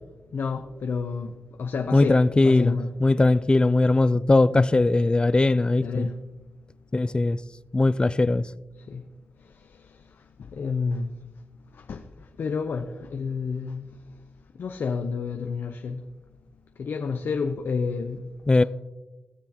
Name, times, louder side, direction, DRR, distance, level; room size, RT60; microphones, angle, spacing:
voice 1, 0.3-1.3 1.6-2.2 2.4-2.9 3.2-3.3 4.5-4.7 5.8-6.2 8.9-9.0 10.5-11.1 11.9-12.0 12.4-13.9 14.6-16.0 16.8-18.3, left 5 dB, 70° left, 0.6 m, -29 dB
voice 2, 1.9-6.1 6.9-7.4 7.7-8.4 18.5-18.6, left 2 dB, 25° left, 0.3 m, -20 dB
16.5 x 6.9 x 2.9 m
cardioid pair, 70°, 4 cm